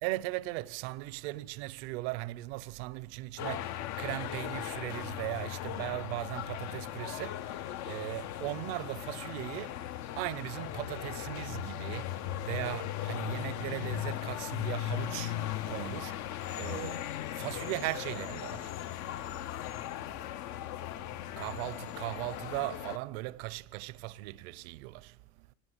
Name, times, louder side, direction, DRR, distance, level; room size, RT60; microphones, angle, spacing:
voice 1, 0.0-18.8 21.4-25.5, right 19 dB, 80° right, 0.7 m, -38 dB
sound 1, 3.4-23.0, left 12 dB, 60° left, 0.7 m, -38 dB
24.5 x 19.0 x 8.1 m
supercardioid pair, 100°, 32 cm